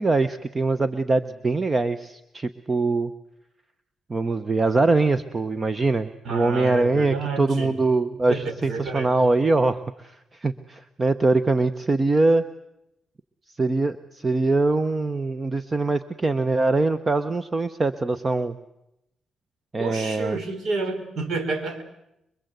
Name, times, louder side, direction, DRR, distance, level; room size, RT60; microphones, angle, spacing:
voice 1, 0.0-3.1 4.1-12.4 13.5-18.6 19.7-20.4, right 3 dB, 25° right, 12 dB, 0.9 m, -23 dB
voice 2, 6.2-7.8 8.3-9.3 19.8-21.8, right 3 dB, 65° right, 7 dB, 4.4 m, -30 dB
25.5 x 23.0 x 8.1 m, 0.84 s
cardioid pair, 110°, 0 cm